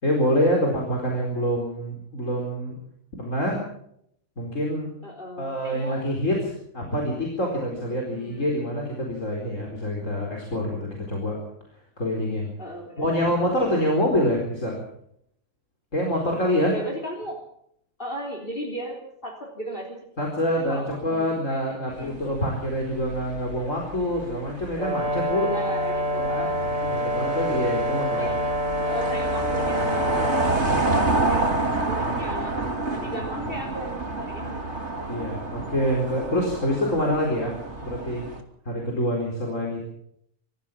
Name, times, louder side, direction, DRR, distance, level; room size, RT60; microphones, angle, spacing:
voice 1, 0.0-2.8 3.2-3.6 4.4-4.9 5.4-11.4 12.0-12.5 13.0-14.8 15.9-16.7 20.2-25.5 26.2-26.5 26.8-28.3 30.5-30.8 31.4-32.4 33.0-33.1 35.1-38.2 38.6-39.8, equal, 65° left, -1 dB, 4.7 m, -26 dB
voice 2, 5.0-6.0 7.9-8.6 12.6-13.1 16.6-17.4 18.0-20.0 20.6-22.2 25.3-26.7 28.1-28.5 28.8-34.9 36.8-36.9, equal, 40° left, 1 dB, 3.7 m, -37 dB
sound 1, 22.0-38.4, right 2 dB, 55° right, 3.3 m, -29 dB
Brass instrument, 24.8-30.6, equal, 70° right, 4.1 m, -26 dB
26.0 x 14.5 x 7.3 m, 0.71 s
omnidirectional pair, 1.4 m